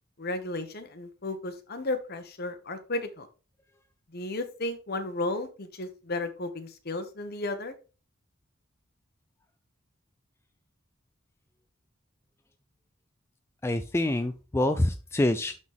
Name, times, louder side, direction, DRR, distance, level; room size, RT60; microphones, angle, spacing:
voice 1, 0.2-3.3 4.1-7.7, left 2 dB, 50° left, 8 dB, 1.2 m, -34 dB
voice 2, 13.6-15.6, left 1 dB, 15° left, 8 dB, 0.4 m, -26 dB
12.0 x 4.2 x 3.5 m, 0.35 s
head